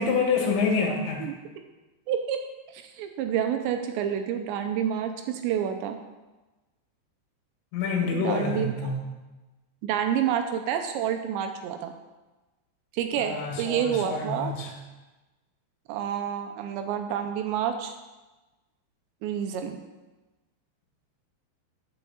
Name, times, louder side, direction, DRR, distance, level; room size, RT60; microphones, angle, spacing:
voice 1, 0.0-1.2 7.7-9.1 13.2-14.7, left 4 dB, 75° left, 1 dB, 3.9 m, -27 dB
voice 2, 2.1-2.4 2.7-6.0 8.0-8.9 9.8-11.9 12.9-14.5 15.9-17.9 19.2-19.8, right 9 dB, 80° right, 6 dB, 2.8 m, -29 dB
9.5 x 7.2 x 7.0 m, 1.1 s
omnidirectional pair, 5.4 m